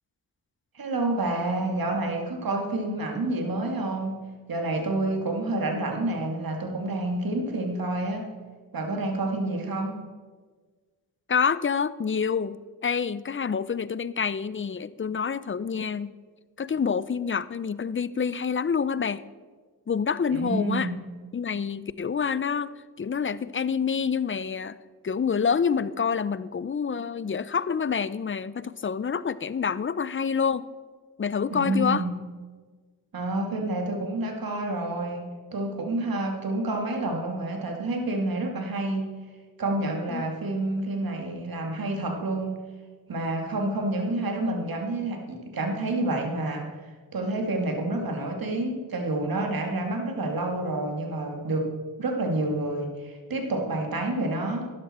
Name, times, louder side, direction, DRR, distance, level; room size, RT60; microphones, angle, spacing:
voice 1, 0.7-4.2 4.5-8.3 8.7-10.0 20.3-20.9 31.5-32.1 33.1-39.1 39.6-42.5 43.1-46.7 47.1-51.7 52.0-54.7, right 2 dB, 60° right, 3 dB, 2.3 m, -28 dB
voice 2, 11.3-12.6 12.8-16.1 16.6-19.2 19.9-20.9 21.3-22.7 23.0-24.8 25.0-30.6 31.2-32.0 40.1-40.2 43.9-44.0, left 6 dB, 30° left, 17 dB, 0.6 m, -27 dB
12.5 x 11.0 x 4.4 m, 1.4 s
cardioid pair, 50°, 40 cm